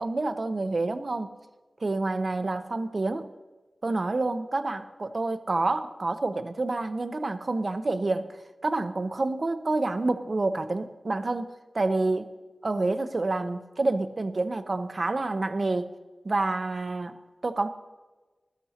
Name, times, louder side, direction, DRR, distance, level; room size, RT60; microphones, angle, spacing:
voice 1, 0.0-1.3 1.8-3.3 3.8-12.3 12.6-15.9 16.2-17.2 17.4-17.7, right 2 dB, 50° right, 9 dB, 0.7 m, -28 dB
19.5 x 13.0 x 2.9 m, 1.2 s
wide cardioid pair, 80°, 0 cm